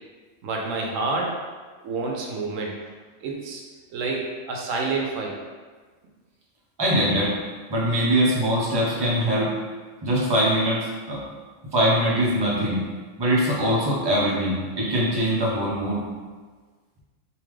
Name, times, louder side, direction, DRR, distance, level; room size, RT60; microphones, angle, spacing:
voice 1, 0.4-1.3 1.8-2.8 3.2-3.6 3.9-5.3, right 3 dB, 80° right, 0 dB, 1.0 m, -28 dB
voice 2, 6.8-7.3 7.7-9.5 10.0-11.2 11.7-12.8 13.2-16.0, equal, 25° right, -6 dB, 0.7 m, -22 dB
3.5 x 2.7 x 3.1 m, 1.4 s
omnidirectional pair, 1.3 m